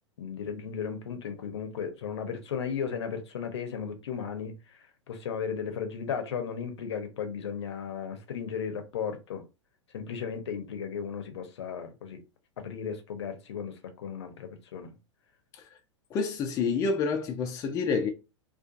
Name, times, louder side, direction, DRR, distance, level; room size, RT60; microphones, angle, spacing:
voice 1, 0.2-9.4 9.9-12.2 12.6-14.9, left 7 dB, 60° left, 0.7 m, -35 dB
voice 2, 16.1-18.1, left 5 dB, 20° left, 0.4 m, -28 dB
2.6 x 2.4 x 2.4 m
figure-of-eight pair, 95°, 16 cm